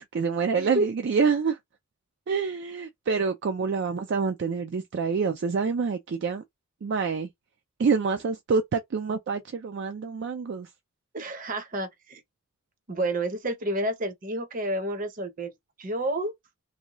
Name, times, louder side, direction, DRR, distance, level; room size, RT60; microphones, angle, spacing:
voice 1, 0.0-1.6 2.3-6.4 6.8-7.3 7.8-10.7, right 5 dB, 55° right, 0.3 m, -27 dB
voice 2, 0.5-0.9 11.1-12.2 12.9-15.5 15.8-16.3, right 1 dB, 40° right, 0.7 m, -29 dB
2.7 x 2.2 x 2.9 m
head